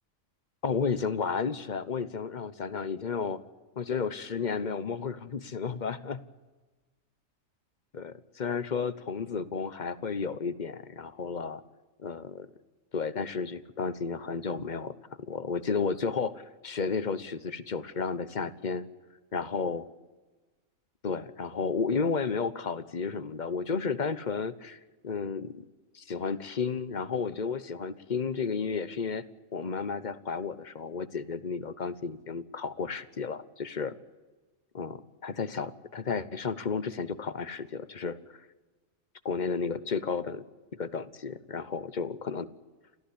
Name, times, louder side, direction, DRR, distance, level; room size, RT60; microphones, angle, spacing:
voice 1, 0.6-3.4 3.8-6.2 7.9-11.6 12.0-12.5 12.9-14.9 15.3-18.9 19.3-19.9 21.0-25.6 25.9-29.2 29.5-33.9 34.7-38.4 39.2-40.4 40.7-42.5, left 5 dB, 40° left, 15 dB, 1.0 m, -32 dB
29.5 x 14.5 x 8.5 m, 1.3 s
omnidirectional pair, 1.4 m